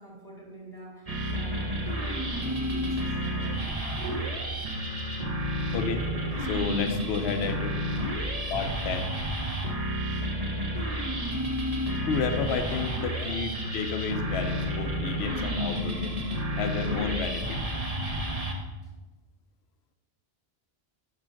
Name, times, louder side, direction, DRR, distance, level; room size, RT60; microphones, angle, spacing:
voice 1, 0.0-3.6 3.9-4.2 8.1-8.5 11.2-11.9 16.7-16.9 18.8-18.9, right 1 dB, 20° right, -2 dB, 1.4 m, -44 dB
sound 1, 1.1-18.5, equal, 40° right, 1.0 m, -31 dB
voice 2, 5.7-6.1 6.4-7.8 8.5-9.1 12.1-16.2 16.6-17.6, left 5 dB, 80° left, 7 dB, 0.9 m, -31 dB
5.6 x 5.0 x 5.7 m, 1.2 s
omnidirectional pair, 1.1 m